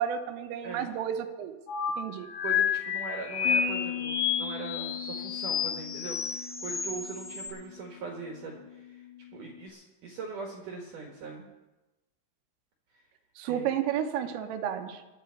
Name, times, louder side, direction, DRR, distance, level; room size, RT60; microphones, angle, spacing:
voice 1, 0.0-1.6 2.0-2.3 13.4-15.0, right 9 dB, 90° right, 7 dB, 3.6 m, -31 dB
sound 1, 1.7-7.5, left 7 dB, 65° left, 3.3 m, -31 dB
voice 2, 2.4-9.1 9.3-11.5 12.9-13.0 13.4-13.6, right 4 dB, 70° right, 1 dB, 2.0 m, -40 dB
Bass guitar, 3.5-9.7, left 12 dB, 80° left, 2.4 m, -41 dB
23.0 x 8.6 x 4.6 m, 1.1 s
omnidirectional pair, 5.8 m